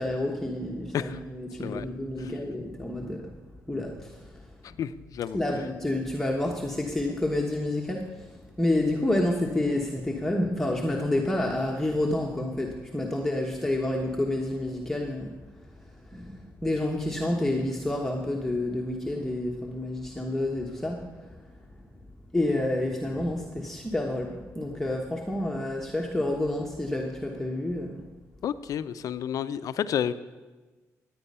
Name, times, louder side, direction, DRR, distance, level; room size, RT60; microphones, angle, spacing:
voice 1, 0.0-3.3 3.7-4.4 5.3-15.3 16.1-21.4 22.3-28.0, left 1 dB, 5° left, -1 dB, 1.3 m, -29 dB
voice 2, 4.6-5.4 28.4-30.1, left 9 dB, 70° left, 13 dB, 0.6 m, -31 dB
15.0 x 9.5 x 5.6 m, 1.3 s
cardioid pair, 90°, 6 cm